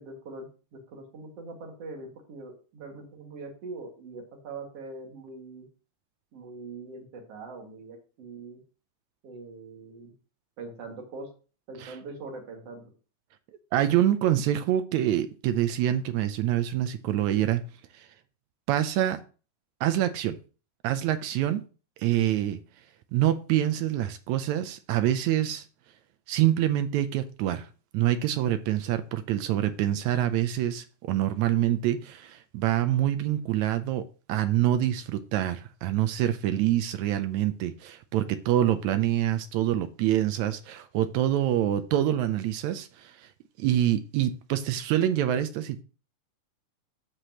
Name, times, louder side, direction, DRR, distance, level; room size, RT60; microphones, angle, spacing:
voice 1, 0.0-5.7 6.3-8.6 9.2-10.1 10.6-11.3 11.7-12.9, right 3 dB, 55° right, 2.7 m, -42 dB
voice 2, 13.7-17.6 17.9-18.1 18.7-19.2 19.8-20.4 20.8-21.6 22.0-22.6 23.1-25.6 26.3-27.7 27.9-34.0 34.3-43.3 43.6-45.8, right 12 dB, 80° right, 1.8 m, -26 dB
13.5 x 4.9 x 2.9 m
omnidirectional pair, 3.7 m